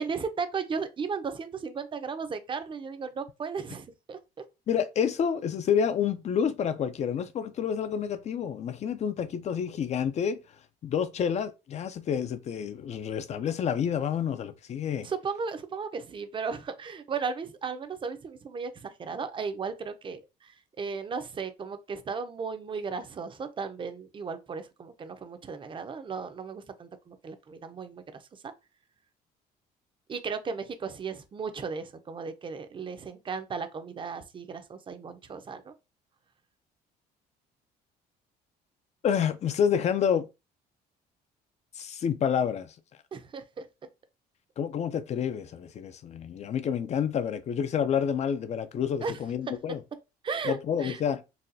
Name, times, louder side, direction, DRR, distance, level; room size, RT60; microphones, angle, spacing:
voice 1, 0.0-4.2 15.0-20.5 20.8-28.0 28.4-28.5 30.1-35.7 43.1-43.6 49.0-49.2 50.2-51.0, right 5 dB, 30° right, 0.5 m, -35 dB
voice 2, 4.7-10.4 10.8-15.1 39.0-40.3 41.8-42.7 44.6-49.8 50.5-51.2, left 8 dB, 40° left, 0.4 m, -28 dB
4.0 x 2.2 x 2.6 m
cardioid pair, 110°, 17 cm